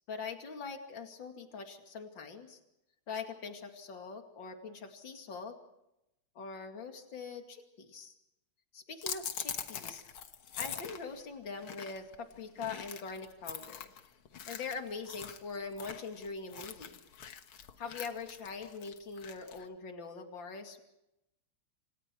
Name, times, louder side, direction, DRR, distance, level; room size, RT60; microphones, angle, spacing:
voice 1, 0.1-2.6 3.1-5.6 6.3-8.1 8.7-10.0 10.6-13.9 14.5-17.0 17.8-20.8, left 4 dB, 65° left, 4 dB, 3.1 m, -43 dB
sound 1, 9.0-19.7, left 8 dB, 80° left, 2.3 m, -44 dB
28.0 x 27.5 x 4.7 m, 0.87 s
omnidirectional pair, 2.3 m